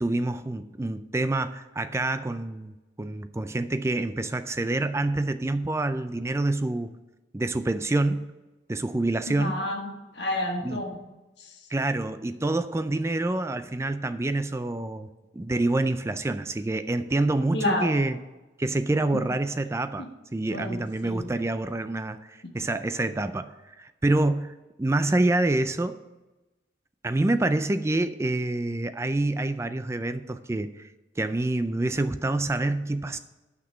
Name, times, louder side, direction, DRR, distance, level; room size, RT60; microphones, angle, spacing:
voice 1, 0.0-2.7 3.0-6.9 7.3-8.3 8.7-9.6 10.6-10.8 11.7-15.1 15.3-18.2 18.6-20.1 20.3-23.5 23.8-26.0 27.0-30.9 31.2-33.2, right 2 dB, 15° right, 11 dB, 0.3 m, -27 dB
voice 2, 9.3-11.0 11.4-11.5 17.5-18.0 20.0-20.1 20.5-21.3, left 1 dB, 60° left, 2 dB, 1.6 m, -30 dB
9.3 x 6.0 x 5.7 m, 1.1 s
head